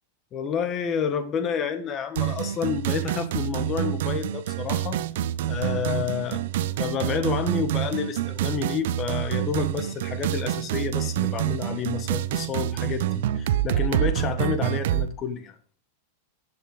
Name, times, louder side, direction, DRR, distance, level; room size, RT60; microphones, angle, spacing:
voice 1, 0.3-5.0 5.4-6.4 6.8-15.5, left 7 dB, 25° left, 1.4 m, -29 dB
sound 1, 2.1-15.1, right 12 dB, 70° right, 0.7 m, -27 dB
10.5 x 7.7 x 3.9 m
supercardioid pair, 145°, 0 cm